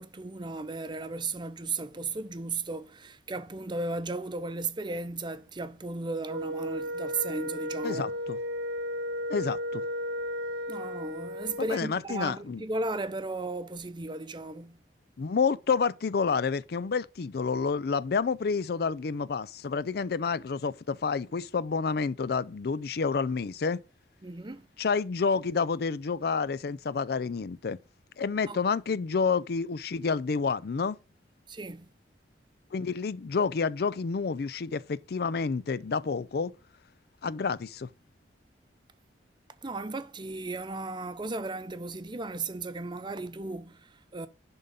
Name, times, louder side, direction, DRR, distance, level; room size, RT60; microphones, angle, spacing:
voice 1, 0.0-8.1 10.7-14.8 24.2-24.7 28.5-28.6 31.5-31.9 39.6-44.3, right 3 dB, 25° right, 0.7 m, -35 dB
Wind instrument woodwind instrument, 6.2-11.9, equal, 85° right, 0.7 m, -34 dB
voice 2, 7.8-8.4 9.3-9.8 11.6-12.6 15.2-23.8 24.8-27.8 28.2-31.0 32.7-36.5 37.2-37.9, left 5 dB, 60° left, 0.4 m, -29 dB
10.5 x 3.7 x 5.2 m
head